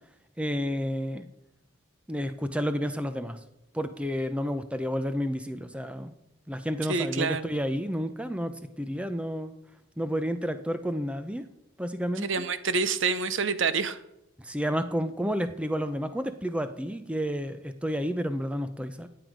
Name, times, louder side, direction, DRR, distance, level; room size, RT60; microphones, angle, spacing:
voice 1, 0.4-1.3 2.1-3.4 3.7-6.1 6.5-9.5 10.0-11.4 11.8-12.3 14.4-19.1, equal, 5° right, 10 dB, 0.7 m, -30 dB
voice 2, 6.9-7.6 12.2-14.0, right 4 dB, 60° right, 13 dB, 0.8 m, -27 dB
15.5 x 7.9 x 5.2 m, 0.89 s
head